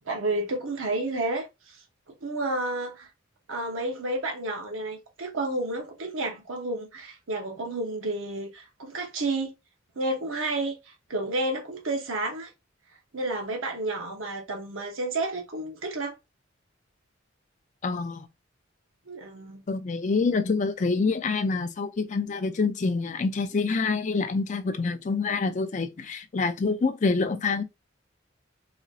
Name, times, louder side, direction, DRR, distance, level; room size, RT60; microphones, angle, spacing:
voice 1, 0.0-1.8 2.2-3.1 3.5-9.5 10.0-10.7 11.1-12.5 13.1-16.2 19.1-19.6, right 2 dB, 90° right, 0.9 m, -31 dB
voice 2, 17.8-18.3 19.7-27.6, left 4 dB, 40° left, 0.4 m, -26 dB
4.2 x 2.6 x 2.4 m
head